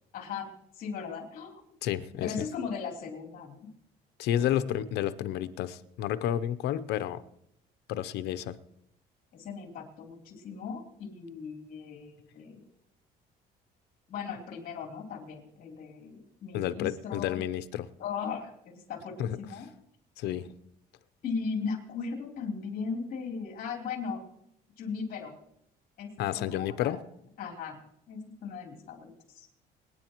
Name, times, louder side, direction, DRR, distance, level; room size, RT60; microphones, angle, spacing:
voice 1, 0.1-1.6 2.2-3.7 4.4-4.5 9.3-12.6 14.1-17.4 18.0-19.7 21.2-24.2 24.8-25.3 26.0-26.9 27.4-27.8 28.1-29.5, left 5 dB, 60° left, 0 dB, 3.3 m, -38 dB
voice 2, 1.8-2.3 4.2-7.2 7.9-8.6 16.5-17.9 19.2-19.3 20.2-20.5 26.2-27.0, left 11 dB, 80° left, 13 dB, 0.7 m, -30 dB
25.5 x 9.7 x 3.0 m, 0.76 s
cardioid pair, 110°, 17 cm